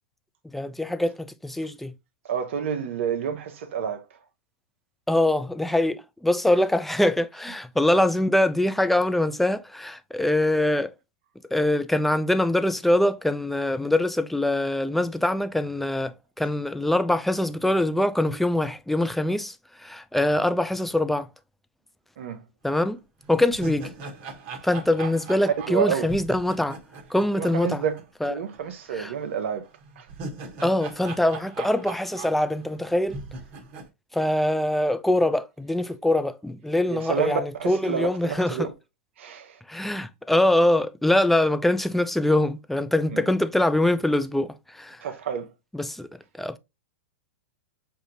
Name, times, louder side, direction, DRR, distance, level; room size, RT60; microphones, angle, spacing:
voice 1, 0.4-1.9 5.1-10.9 11.5-21.3 22.6-23.0 23.3-23.9 24.6-26.8 27.1-27.8 28.2-28.4 28.9-29.1 30.6-33.2 34.1-38.7 39.7-45.0 45.7-46.1 46.4-46.6, left 1 dB, ahead, 0.4 m, -23 dB
voice 2, 2.3-4.0 6.5-6.7 22.2-22.4 25.0-25.1 25.4-26.1 27.3-29.6 30.0-30.1 36.9-38.6 39.2-39.6 43.1-43.3 45.0-45.4, right 7 dB, 65° right, 0.7 m, -29 dB
sound 1, 22.7-22.8 23.2-28.3 28.5-28.6 29.8-32.8 33.1-33.9, right 3 dB, 45° right, 1.2 m, -39 dB
6.4 x 2.6 x 2.9 m
hypercardioid pair, 115°, 7 cm